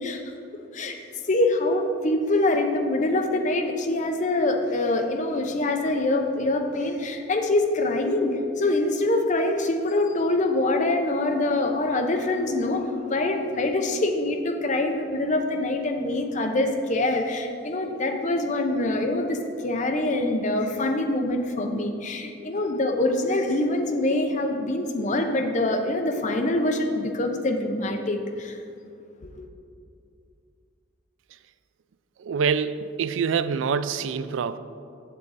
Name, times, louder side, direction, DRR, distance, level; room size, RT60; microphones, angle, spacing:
voice 1, 1.3-28.6, left 2 dB, 40° left, 4 dB, 0.7 m, -25 dB
voice 2, 32.2-34.6, right 6 dB, 85° right, 13 dB, 0.3 m, -25 dB
7.5 x 7.5 x 4.0 m, 2.5 s
head